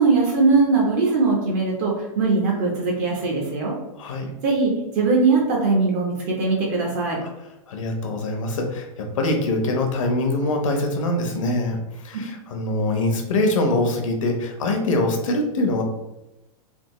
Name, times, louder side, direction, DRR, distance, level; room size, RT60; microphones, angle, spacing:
voice 1, 0.0-3.7 4.4-7.2, right 3 dB, 30° right, -2 dB, 0.5 m, -20 dB
voice 2, 4.0-4.3 7.2-7.3 7.7-15.8, left 2 dB, 60° left, 3 dB, 0.8 m, -23 dB
3.4 x 2.4 x 3.0 m, 0.97 s
supercardioid pair, 175°, 18 cm